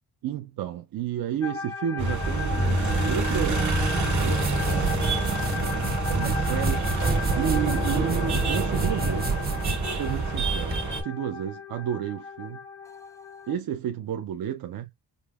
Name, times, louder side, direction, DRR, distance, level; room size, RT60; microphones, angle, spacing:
voice 1, 0.2-3.8 4.1-5.0 5.5-7.1 7.3-9.3 9.9-12.6 13.5-14.9, right 10 dB, 60° right, 0.5 m, -32 dB
sound 1, 1.4-13.5, left 4 dB, 10° left, 0.3 m, -37 dB
sound 2, 2.0-11.0, right 2 dB, 40° right, 1.6 m, -26 dB
sound 3, 3.7-10.8, right 3 dB, 20° right, 0.9 m, -32 dB
5.0 x 2.1 x 2.3 m
cardioid pair, 95°, 41 cm